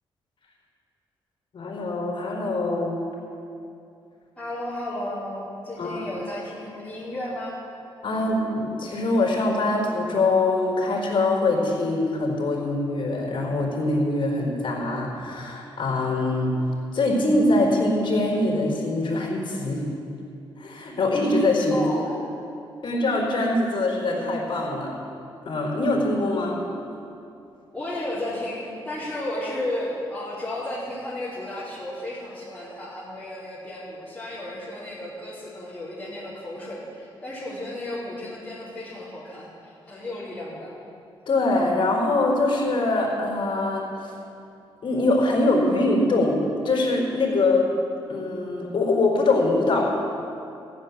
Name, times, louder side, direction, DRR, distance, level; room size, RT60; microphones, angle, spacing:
voice 1, 1.5-3.0 5.8-6.0 8.0-16.6 16.9-19.9 20.6-21.8 22.8-24.9 25.4-26.6 41.3-44.1 44.8-46.4 46.6-47.7 48.1-49.9, left 2 dB, 55° left, -2 dB, 4.2 m, -23 dB
voice 2, 4.4-7.5 21.7-22.1 27.7-40.7, left 1 dB, 10° left, -13 dB, 4.4 m, -33 dB
15.0 x 7.5 x 9.4 m, 2.7 s
cardioid pair, 100°, 10 cm